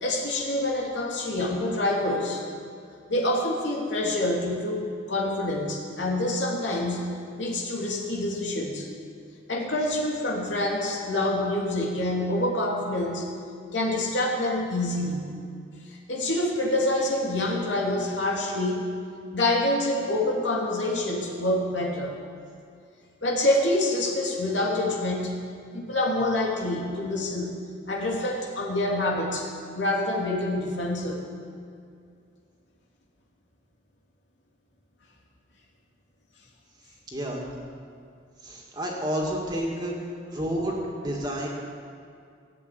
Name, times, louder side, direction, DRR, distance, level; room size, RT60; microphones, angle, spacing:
voice 1, 0.0-2.4 3.1-8.9 9.5-13.3 13.7-15.3 15.9-18.9 19.3-22.1 23.2-25.4 25.7-27.6 27.9-29.5 29.7-31.3, left 1 dB, 75° left, -1 dB, 2.8 m, -26 dB
voice 2, 37.1-37.5 38.4-39.9 40.3-41.5, equal, 20° right, -2 dB, 2.4 m, -30 dB
17.0 x 8.3 x 9.3 m, 2.3 s
head